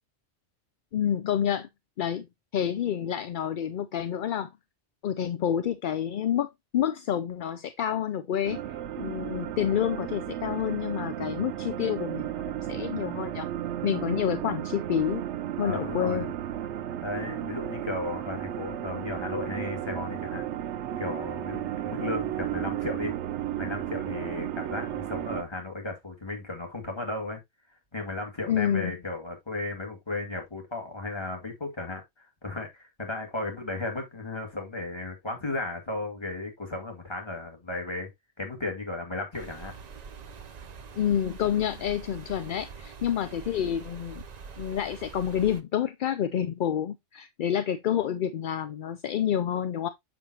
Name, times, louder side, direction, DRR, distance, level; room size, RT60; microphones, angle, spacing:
voice 1, 0.9-1.7 2.0-2.3 2.5-4.5 5.0-12.3 12.7-13.5 13.8-15.3 15.6-16.3 28.5-28.9 41.0-44.2 44.6-49.9, left 9 dB, 60° left, 0.6 m, -28 dB
sound 1, 8.4-25.4, right 11 dB, 85° right, 0.9 m, -34 dB
voice 2, 15.6-16.3 17.0-20.4 21.0-23.1 23.6-27.4 27.9-38.1 38.4-39.7, left 2 dB, 25° left, 2.0 m, -35 dB
sound 2, 39.3-45.6, right 5 dB, 45° right, 0.7 m, -44 dB
7.2 x 6.0 x 2.8 m
omnidirectional pair, 1.2 m